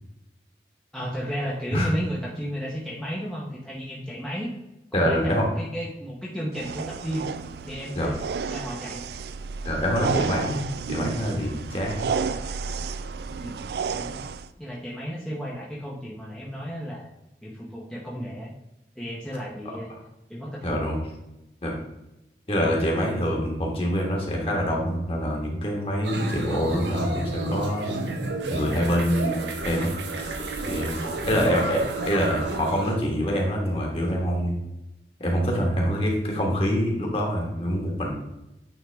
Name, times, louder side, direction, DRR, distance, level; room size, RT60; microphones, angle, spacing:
voice 1, 0.9-4.5 4.9-7.3 7.6-8.2 8.5-9.1 13.4-13.6 13.9-14.2 14.6-17.1 17.4-18.5 19.0-19.9 20.3-20.8 31.3-31.5, equal, 5° left, -6 dB, 0.8 m, -33 dB
voice 2, 4.9-5.5 7.9-8.1 9.6-12.0 20.6-21.0 21.6-21.7 22.5-27.9 28.5-29.4 29.6-29.9 30.6-31.0 31.2-34.6 35.2-38.1, equal, 35° left, -1 dB, 1.5 m, -25 dB
sound 1, 6.5-14.5, right 5 dB, 65° right, 0.3 m, -32 dB
sound 2, 26.0-33.0, right 2 dB, 90° right, 1.0 m, -31 dB
9.1 x 3.6 x 3.4 m, 0.91 s
head